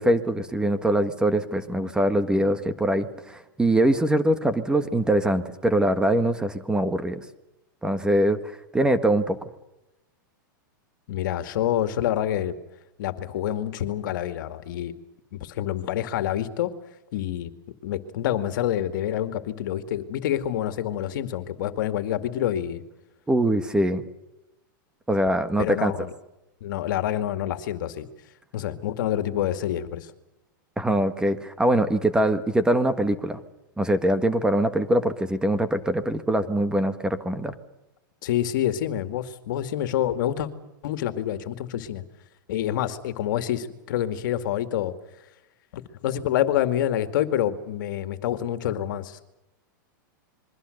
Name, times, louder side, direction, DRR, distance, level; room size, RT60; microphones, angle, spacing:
voice 1, 0.0-7.2 7.8-8.4 8.7-9.5 23.3-24.0 25.1-25.9 30.8-33.4 33.8-37.5, right 1 dB, 5° right, 10 dB, 1.5 m, -23 dB
voice 2, 11.1-12.6 13.0-14.9 15.3-16.7 17.1-17.5 17.8-22.8 25.6-26.1 26.6-28.1 28.5-30.1 38.2-40.5 40.8-42.0 42.5-45.0 45.7-49.2, left 11 dB, 65° left, 9 dB, 2.2 m, -27 dB
27.0 x 22.5 x 6.7 m, 0.91 s
hypercardioid pair, 125°, 11 cm